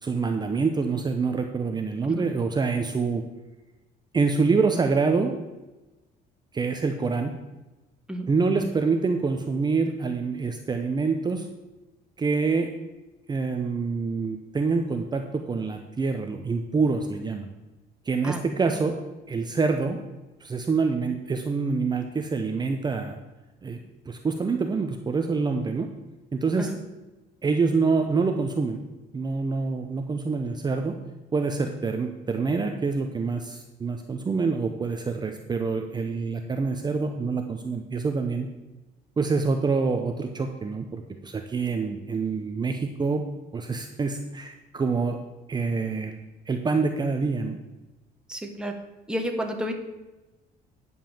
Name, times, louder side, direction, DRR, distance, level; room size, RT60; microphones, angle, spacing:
voice 1, 0.0-3.2 4.1-5.4 6.5-7.4 8.3-11.5 12.2-12.7 13.3-17.5 18.1-19.0 19.3-20.0 20.4-23.2 23.6-23.8 24.1-25.9 26.3-26.7 27.4-28.8 29.1-31.0 31.3-38.5 39.2-43.2 43.5-45.2 45.5-46.2 46.5-47.6, right 4 dB, 25° right, 5 dB, 0.8 m, -26 dB
voice 2, 48.3-48.7 49.1-49.7, equal, 5° right, 3 dB, 1.4 m, -31 dB
10.0 x 5.5 x 7.1 m, 1.1 s
cardioid pair, 110°, 17 cm